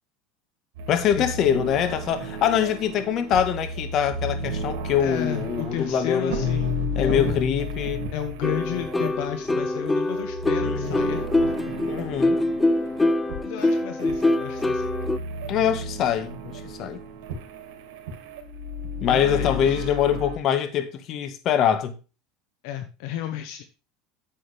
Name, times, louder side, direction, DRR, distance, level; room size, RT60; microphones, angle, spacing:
sound 1, 0.8-20.4, left 1 dB, 75° right, 2.6 m, -33 dB
voice 1, 0.9-6.5 6.9-8.0 10.6-11.0 11.9-12.4 15.5-17.0 19.0-22.0, left 9 dB, 50° left, 1.6 m, -24 dB
voice 2, 5.0-7.5 8.1-11.7 13.4-14.9 19.1-19.9 22.6-23.6, left 11 dB, 70° left, 1.0 m, -33 dB
sound 2, 8.4-15.2, left 2 dB, 10° left, 0.5 m, -24 dB
10.0 x 7.7 x 3.5 m
supercardioid pair, 105°, 0 cm